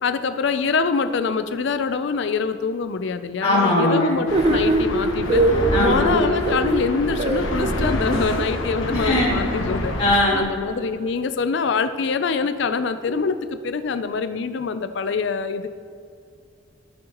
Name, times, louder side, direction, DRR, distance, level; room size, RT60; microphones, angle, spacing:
voice 1, 0.0-5.4 5.8-9.9 10.3-13.4 13.6-15.7, left 5 dB, 60° left, 10 dB, 0.4 m, -24 dB
voice 2, 3.4-4.1 5.7-6.2 8.9-9.3 10.0-10.4, left 1 dB, 25° left, -11 dB, 2.0 m, -20 dB
sound 1, 4.3-10.1, left 1 dB, 75° left, 1.1 m, -27 dB
sound 2, 4.3-8.5, right 2 dB, 30° right, 0.5 m, -22 dB
14.5 x 6.4 x 3.0 m, 2.3 s
head